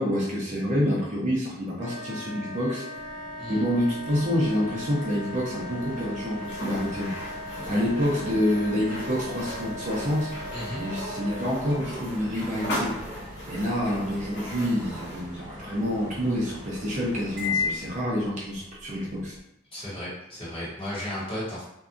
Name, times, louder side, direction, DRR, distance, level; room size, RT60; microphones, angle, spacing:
voice 1, 0.0-3.2 3.5-10.3 10.7-19.4, equal, 40° right, -5 dB, 0.6 m, -28 dB
Wind instrument woodwind instrument, 1.8-11.9, left 1 dB, 85° right, 0.8 m, -39 dB
sound 1, 2.9-19.4, left 4 dB, 25° right, 1.2 m, -39 dB
sound 2, 6.4-15.3, equal, 60° left, 1.1 m, -38 dB
voice 2, 10.5-10.8 19.7-21.6, left 1 dB, 30° left, -8 dB, 1.0 m, -34 dB
2.6 x 2.3 x 2.4 m, 0.82 s
head